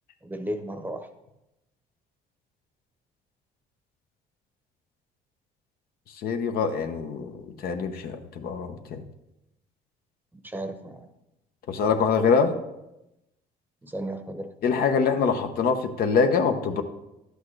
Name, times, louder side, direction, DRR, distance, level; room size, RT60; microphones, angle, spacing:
voice 1, 0.2-1.1 10.4-11.1 13.8-14.5, right 1 dB, 10° right, 7 dB, 0.8 m, -34 dB
voice 2, 6.2-9.0 11.7-12.5 14.6-16.8, left 5 dB, 65° left, 6 dB, 0.9 m, -24 dB
11.5 x 8.2 x 3.2 m, 0.92 s
cardioid pair, 110°, 17 cm